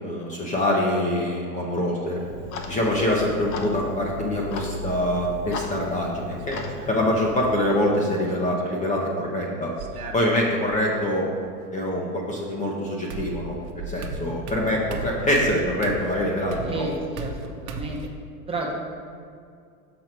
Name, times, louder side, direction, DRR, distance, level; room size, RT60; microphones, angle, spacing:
voice 1, 0.0-2.2 2.7-6.6 6.9-9.7 10.1-11.3 11.7-13.5 13.9-16.9, left 1 dB, 15° left, -2 dB, 0.7 m, -24 dB
Clock, 2.2-7.5, left 2 dB, 60° left, 1.0 m, -35 dB
sound 1, 6.3-6.9 8.2-8.8 9.8-10.8 12.5-12.6 13.1-18.1, right 3 dB, 65° right, 1.0 m, -36 dB
voice 2, 16.6-18.0 18.5-18.7, right 2 dB, 10° right, -2 dB, 0.9 m, -31 dB
6.3 x 6.0 x 4.4 m, 2.3 s
hypercardioid pair, 120°, 45 cm